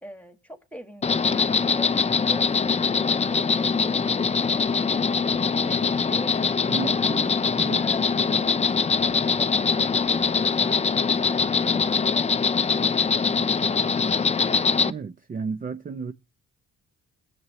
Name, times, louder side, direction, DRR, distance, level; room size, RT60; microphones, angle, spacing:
voice 1, 0.0-5.0 5.5-10.8 11.2-11.8 12.1-13.5, equal, 5° left, 2.0 m, -43 dB
Insect, 1.0-14.9, left 5 dB, 20° left, 0.5 m, -23 dB
voice 2, 6.7-7.8 14.9-16.1, right 5 dB, 30° right, 0.6 m, -33 dB
20.5 x 7.6 x 3.0 m
cardioid pair, 90°, 30 cm